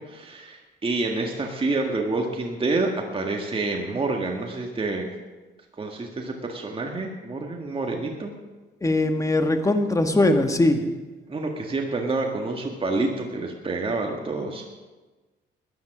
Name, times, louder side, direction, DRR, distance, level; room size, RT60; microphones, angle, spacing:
voice 1, 0.1-5.1 5.8-8.3 11.3-14.6, right 3 dB, 25° right, 1 dB, 1.8 m, -28 dB
voice 2, 8.8-10.8, left 2 dB, 15° left, 6 dB, 1.6 m, -20 dB
15.0 x 10.5 x 6.1 m, 1.2 s
cardioid pair, 90°, 20 cm